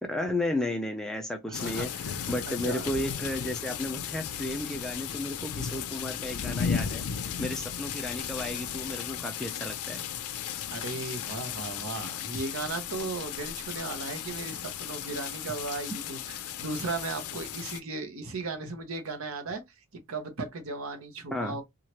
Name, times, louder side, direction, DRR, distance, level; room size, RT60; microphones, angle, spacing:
voice 1, 0.0-10.0 21.3-21.6, left 1 dB, ahead, 0.4 m, -33 dB
sound 1, 1.5-17.8, left 8 dB, 80° left, 0.4 m, -35 dB
voice 2, 1.5-2.9 10.7-19.6 19.9-21.6, right 3 dB, 65° right, 0.8 m, -36 dB
2.9 x 2.4 x 2.9 m
head